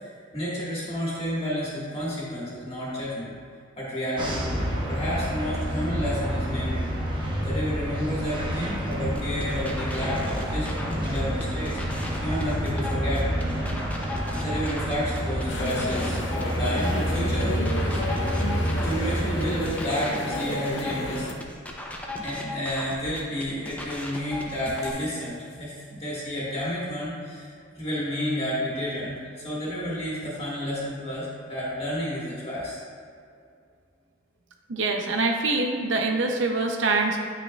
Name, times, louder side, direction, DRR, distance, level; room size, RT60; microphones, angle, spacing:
voice 1, 0.0-3.4 3.8-4.4 4.9-6.9 7.4-13.3 14.3-17.6 18.8-21.3 22.2-27.5 27.8-32.8, equal, 30° left, -8 dB, 1.7 m, -31 dB
sound 1, 4.2-19.7, equal, 25° right, 1.0 m, -28 dB
sound 2, 8.9-24.9, left 2 dB, 10° left, 0.5 m, -37 dB
sound 3, 15.5-21.3, left 1 dB, 60° left, 0.7 m, -32 dB
voice 2, 34.7-37.2, right 3 dB, 70° right, 2 dB, 0.6 m, -24 dB
10.0 x 5.8 x 2.3 m, 2.2 s
head